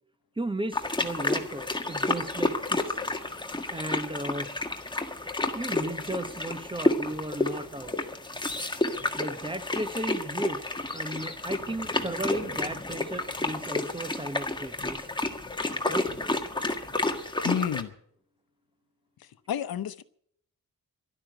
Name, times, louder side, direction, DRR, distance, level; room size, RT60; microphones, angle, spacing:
voice 1, 0.4-3.0 3.7-4.5 5.5-8.0 9.2-10.6 10.9-15.1 15.9-16.1, right 1 dB, 15° right, 1.0 m, -35 dB
sound 1, 0.7-17.8, left 2 dB, 15° left, 1.6 m, -30 dB
voice 2, 17.4-17.9 19.2-20.0, left 9 dB, 80° left, 0.8 m, -31 dB
12.0 x 12.0 x 9.0 m
wide cardioid pair, 95°, 36 cm